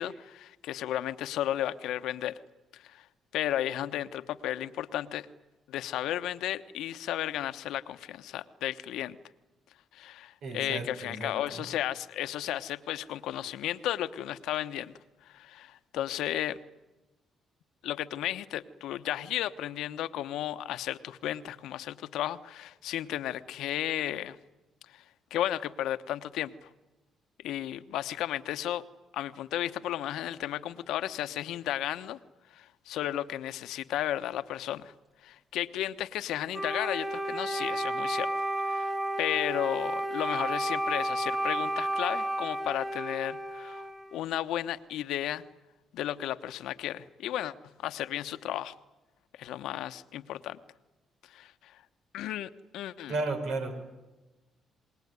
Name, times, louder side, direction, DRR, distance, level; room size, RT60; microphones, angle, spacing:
voice 1, 0.0-2.4 2.7-3.1 3.3-5.3 5.7-9.2 9.9-14.9 15.2-16.6 17.8-24.4 24.9-25.0 25.3-26.7 27.4-28.8 29.1-32.2 32.5-34.9 35.2-38.3 38.6-38.9 39.2-43.8 44.1-45.4 45.9-47.5 47.8-48.7 49.4-50.6 51.3-51.8 52.1-53.2, left 12 dB, 85° left, 11 dB, 1.0 m, -34 dB
voice 2, 10.4-11.6 53.1-53.8, right 3 dB, 80° right, 5 dB, 5.3 m, -34 dB
Wind instrument woodwind instrument, 36.5-44.2, right 1 dB, 20° right, 2.1 m, -32 dB
28.5 x 20.5 x 9.6 m, 1.1 s
cardioid pair, 90°, 0 cm